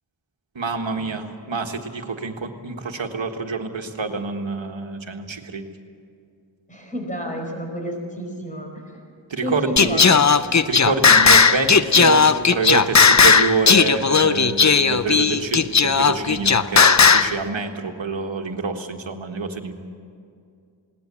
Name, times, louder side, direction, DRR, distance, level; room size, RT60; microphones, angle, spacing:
voice 1, 0.5-5.7 9.3-10.0 10.6-19.7, right 4 dB, 90° right, 4 dB, 1.6 m, -26 dB
voice 2, 6.7-8.8 9.4-10.3, equal, 15° left, 1 dB, 4.8 m, -30 dB
Singing, 9.8-17.3, left 5 dB, 40° left, 0.7 m, -15 dB
20.5 x 18.0 x 8.4 m, 2.4 s
wide cardioid pair, 65°, 44 cm